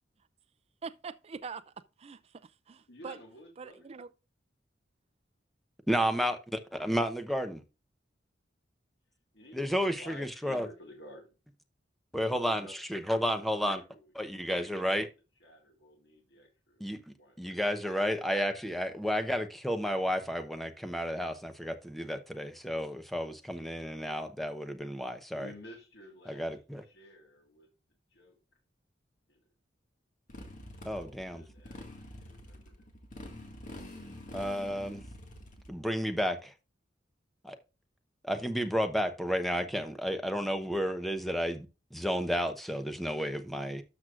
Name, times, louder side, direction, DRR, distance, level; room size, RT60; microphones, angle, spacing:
voice 1, 0.8-3.2 3.6-4.1, right 5 dB, 35° right, 0.4 m, -44 dB
voice 2, 2.9-3.8 9.3-11.3 12.2-12.8 13.2-14.1 15.4-16.8 17.1-17.5 25.4-26.5 26.8-27.7 28.1-28.4 29.3-29.5 30.7-32.9, left 1 dB, 65° left, 1.9 m, -53 dB
voice 3, 5.9-7.6 9.5-10.7 12.1-13.8 14.1-15.1 16.8-17.0 17.4-25.5 26.3-26.8 30.8-31.4 34.3-35.0 35.7-36.5 37.4-37.6 38.2-41.7 41.9-43.8, equal, ahead, 0.8 m, -32 dB
Motorcycle, 30.3-35.7, left 1 dB, 45° left, 1.9 m, -46 dB
12.5 x 6.1 x 2.5 m
head